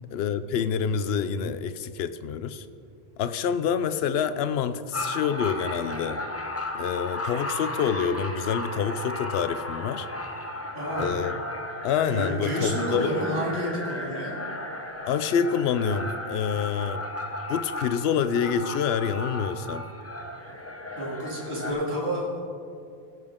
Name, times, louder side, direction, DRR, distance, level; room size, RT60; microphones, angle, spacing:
voice 1, 0.1-2.7 3.2-6.2 6.7-10.1 11.0-11.4 11.8-13.2 15.1-17.0 17.5-19.9, left 7 dB, 80° left, 12 dB, 0.8 m, -27 dB
sound 1, 4.9-21.7, left 1 dB, 15° left, 0.8 m, -35 dB
voice 2, 10.7-11.2 12.1-14.3 20.9-22.4, equal, 85° right, -6 dB, 3.1 m, -30 dB
18.0 x 7.6 x 3.6 m, 2.3 s
omnidirectional pair, 1.0 m